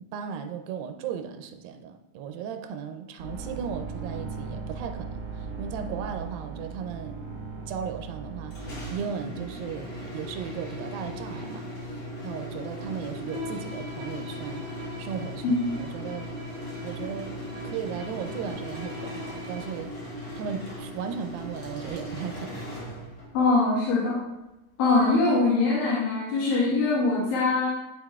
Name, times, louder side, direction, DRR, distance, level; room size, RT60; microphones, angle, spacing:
voice 1, 0.1-7.3 7.7-11.7 12.2-14.7 15.0-16.3 16.8-17.3 17.6-19.9 20.4-22.6, right 7 dB, 90° right, 7 dB, 2.3 m, -36 dB
sound 1, 3.2-8.9, right 4 dB, 50° right, 1.3 m, -37 dB
sound 2, 8.5-23.4, equal, 45° left, 1.2 m, -38 dB
Bowed string instrument, 13.2-19.9, left 2 dB, 10° right, 0.9 m, -43 dB
voice 2, 23.3-24.2 24.8-27.7, left 3 dB, 85° left, -7 dB, 3.2 m, -22 dB
11.0 x 4.7 x 2.3 m, 0.94 s
omnidirectional pair, 4.0 m